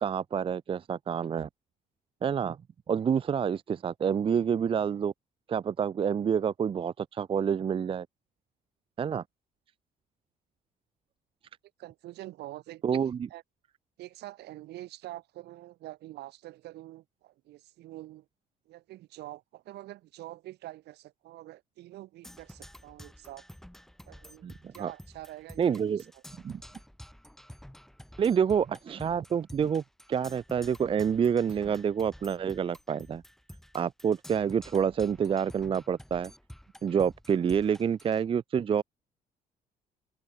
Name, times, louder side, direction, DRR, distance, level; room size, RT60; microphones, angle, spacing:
voice 1, 0.0-1.5 2.2-2.6 2.9-5.1 5.5-8.1 9.0-9.2 12.8-13.3 24.4-24.9 25.6-26.0 26.4-26.6 28.2-29.8 30.1-33.2 33.7-36.3 36.8-38.8, right 7 dB, 30° right, 0.5 m, -28 dB
voice 2, 11.8-13.4 14.0-18.3 18.7-23.4 24.1-24.5 24.7-25.9, right 16 dB, 80° right, 5.5 m, -46 dB
Percussion, 22.2-38.2, equal, ahead, 4.8 m, -50 dB
open air
cardioid pair, 110°, 17 cm